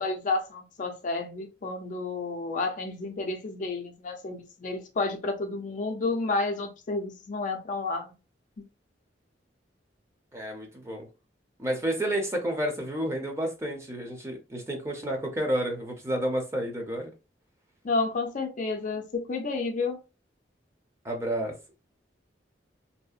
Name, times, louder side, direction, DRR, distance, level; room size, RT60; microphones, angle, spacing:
voice 1, 0.0-8.1 17.8-20.0, left 3 dB, 45° left, 0.5 m, -31 dB
voice 2, 10.3-11.1 11.6-17.1 21.0-21.5, right 1 dB, 15° right, 0.6 m, -30 dB
2.7 x 2.0 x 2.4 m
head